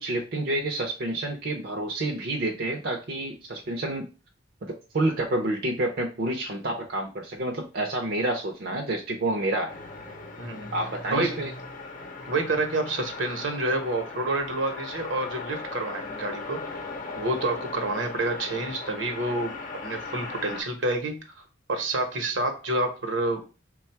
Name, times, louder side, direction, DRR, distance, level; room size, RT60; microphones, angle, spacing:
voice 1, 0.0-4.1 4.6-9.8 10.7-11.5, right 2 dB, 55° right, 1 dB, 0.6 m, -29 dB
sound 1, 9.7-20.6, left 3 dB, 45° left, 0.7 m, -38 dB
voice 2, 10.4-10.7 11.1-11.4 12.3-16.6 17.2-19.6 19.8-21.2 21.7-23.4, right 2 dB, 75° right, 5 dB, 0.9 m, -28 dB
3.5 x 2.3 x 4.4 m, 0.33 s
head